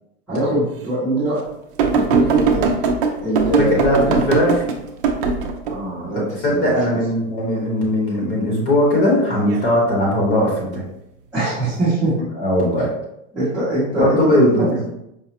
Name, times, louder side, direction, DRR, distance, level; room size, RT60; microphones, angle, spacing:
voice 1, 0.3-1.4 1.9-2.6 3.2-4.2 5.7-7.0 11.3-12.1 13.3-14.9, right 2 dB, ahead, -15 dB, 0.6 m, -22 dB
sound 1, 1.8-5.7 9.2-9.6 10.7-10.8, right 4 dB, 45° right, 0.4 m, -20 dB
voice 2, 3.7-4.6 6.4-10.8 12.4-12.9 14.0-14.8, left 1 dB, 40° left, -3 dB, 1.0 m, -18 dB
4.8 x 2.0 x 2.8 m, 0.82 s
supercardioid pair, 175°, 39 cm